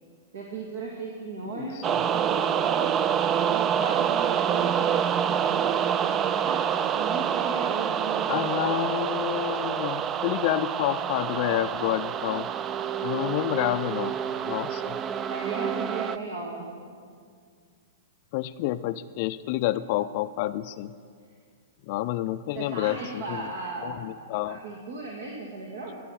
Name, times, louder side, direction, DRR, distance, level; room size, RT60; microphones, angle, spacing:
voice 1, 0.3-3.0 3.5-6.6 6.9-9.0 15.3-16.7 22.5-24.1 24.5-26.0, right 3 dB, 70° right, -1 dB, 1.7 m, -37 dB
voice 2, 1.5-2.0 8.3-12.5 13.0-14.2 14.4-15.0 18.3-20.9 21.8-23.5 23.8-24.6, left 14 dB, 50° left, 13 dB, 0.3 m, -29 dB
sound 1, 1.8-16.2, right 8 dB, 30° right, 0.4 m, -27 dB
15.0 x 6.9 x 6.4 m, 2.1 s
hypercardioid pair, 115°, 0 cm